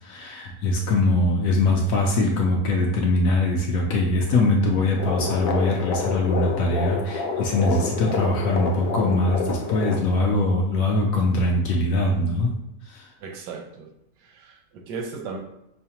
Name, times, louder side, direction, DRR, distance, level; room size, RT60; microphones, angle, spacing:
voice 1, 0.0-12.5 12.9-13.1, left 2 dB, 70° left, 0 dB, 0.8 m, -22 dB
sound 1, 4.9-10.0, left 5 dB, 85° left, 1.2 m, -28 dB
voice 2, 13.2-13.9 14.2-15.4, right 4 dB, 90° right, 2 dB, 1.3 m, -36 dB
5.4 x 2.1 x 2.8 m, 0.82 s
omnidirectional pair, 1.8 m